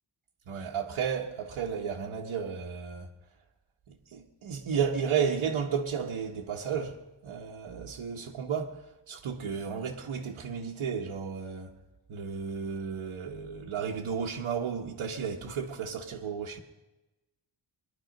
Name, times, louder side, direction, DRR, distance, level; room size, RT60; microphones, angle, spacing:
voice 1, 0.5-3.1 3.9-11.7 12.1-16.6, right 6 dB, 85° right, 1.3 m, -33 dB
21.5 x 11.5 x 5.3 m
wide cardioid pair, 155°, 48 cm